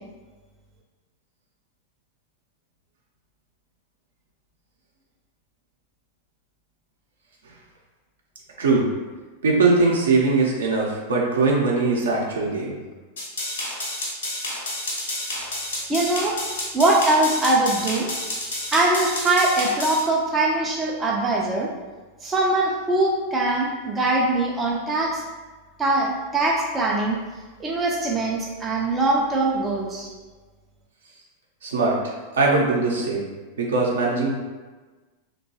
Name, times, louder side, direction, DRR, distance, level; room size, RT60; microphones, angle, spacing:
voice 1, 9.4-12.7 31.6-32.0 32.3-33.3 33.6-34.4, right 3 dB, 65° right, -2 dB, 0.6 m, -21 dB
sound 1, 13.2-20.0, left 1 dB, 65° left, 0.8 m, -30 dB
voice 2, 15.9-16.4 16.7-18.1 18.7-21.7 22.2-25.2 25.8-27.2 27.6-30.1, right 2 dB, 15° right, -2 dB, 0.4 m, -22 dB
2.8 x 2.2 x 2.8 m, 1.3 s
figure-of-eight pair, 90°, 0 cm